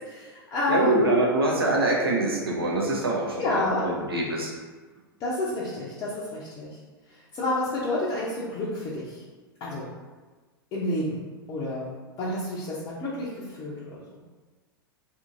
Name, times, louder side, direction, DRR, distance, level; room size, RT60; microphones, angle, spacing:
voice 1, 0.1-1.0 3.4-3.9 5.2-6.7 7.3-9.2 9.6-9.9 10.7-11.2 11.5-11.9 12.2-14.0, left 2 dB, 30° left, -8 dB, 0.6 m, -29 dB
voice 2, 0.7-4.5, right 2 dB, 75° right, -2 dB, 0.7 m, -24 dB
2.8 x 2.6 x 2.4 m, 1.3 s
figure-of-eight pair, 95°, 12 cm